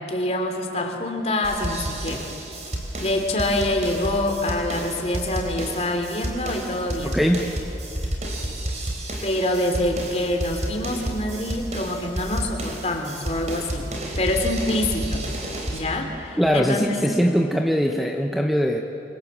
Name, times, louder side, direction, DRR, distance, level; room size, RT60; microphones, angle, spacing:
voice 1, 0.1-2.2 3.0-7.2 9.2-13.9 14.2-15.2 15.7-17.0, left 1 dB, 35° left, 3 dB, 3.2 m, -25 dB
sound 1, 1.4-15.8, right 1 dB, 40° right, 4.0 m, -31 dB
voice 2, 7.1-7.4 16.4-18.8, equal, ahead, 2 dB, 1.1 m, -21 dB
28.5 x 24.5 x 7.5 m, 2.9 s
head